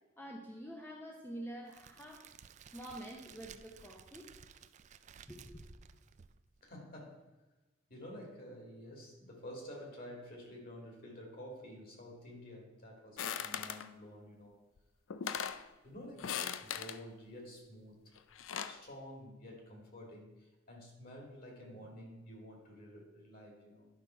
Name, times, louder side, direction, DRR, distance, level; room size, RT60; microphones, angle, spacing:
voice 1, 0.2-2.3 2.7-4.3 5.3-5.7, right 1 dB, 10° left, 0 dB, 0.8 m, -47 dB
Crackle, 1.7-6.7, right 7 dB, 35° right, 0.3 m, -56 dB
voice 2, 6.6-7.3 7.9-14.6 15.8-18.0 18.7-23.9, equal, 45° left, 0 dB, 2.5 m, -50 dB
sound 1, 13.2-13.9 14.8-14.9 15.1-15.6 16.2-17.0 18.2-18.8, left 8 dB, 80° left, 0.5 m, -39 dB
11.0 x 5.7 x 4.5 m, 1.1 s
head